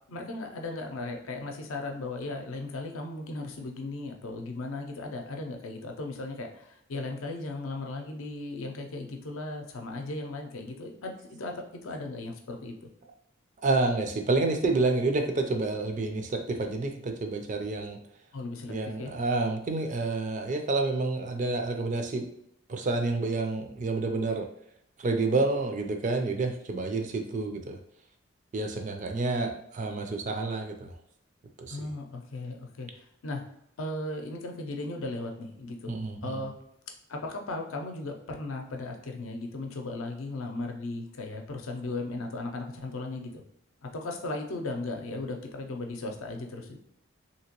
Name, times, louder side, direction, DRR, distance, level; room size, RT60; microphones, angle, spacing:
voice 1, 0.1-12.7 18.3-19.1 31.7-32.9 33.2-33.4 33.8-35.9 36.2-36.5 37.1-43.4 43.8-46.8, left 2 dB, 90° left, 3 dB, 0.6 m, -36 dB
voice 2, 13.6-18.0 18.7-22.3 22.7-24.5 25.0-27.8 28.5-30.9 31.6-31.8 35.9-36.4, right 3 dB, 40° right, 4 dB, 0.4 m, -29 dB
2.9 x 2.8 x 2.9 m, 0.71 s
head